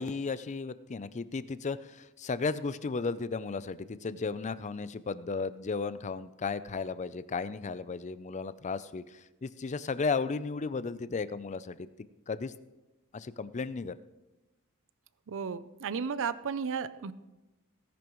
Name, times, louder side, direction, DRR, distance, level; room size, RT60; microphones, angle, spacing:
voice 1, 0.0-11.9 12.3-12.5 13.1-13.9, left 4 dB, 30° left, 15 dB, 0.4 m, -34 dB
voice 2, 15.3-17.1, right 6 dB, 60° right, 15 dB, 0.5 m, -34 dB
17.5 x 10.5 x 3.1 m, 1.0 s
head